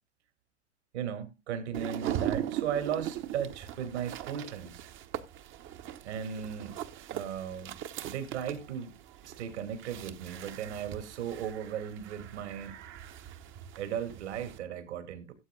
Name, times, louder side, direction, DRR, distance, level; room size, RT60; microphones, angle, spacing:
voice 1, 0.9-4.9 6.0-6.8 7.1-7.8 8.0-12.7 13.8-15.3, right 8 dB, 65° right, 2.4 m, -36 dB
sound 1, 1.7-14.6, right 11 dB, 35° right, 0.9 m, -40 dB
17.0 x 8.0 x 2.3 m
figure-of-eight pair, 90°, 37 cm